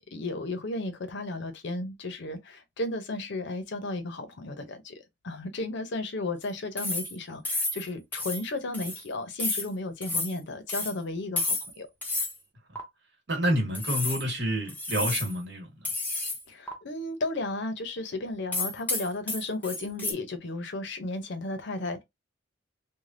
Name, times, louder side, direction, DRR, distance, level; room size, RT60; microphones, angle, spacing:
voice 1, 0.1-11.9 16.5-22.0, left 2 dB, 60° left, 0.7 m, -34 dB
sound 1, 6.8-7.2 7.5-7.8 8.1-8.4 8.7-9.0 9.4-9.7 10.0-10.3 10.7-10.9 11.4-11.7 12.0-12.3 12.8-12.9 13.7-14.2 14.7-15.3 15.9-16.4 16.7-16.8 18.5-20.1, left 2 dB, 10° left, 0.7 m, -31 dB
voice 2, 13.3-15.7, equal, 60° right, 1.4 m, -28 dB
3.3 x 2.2 x 2.5 m
head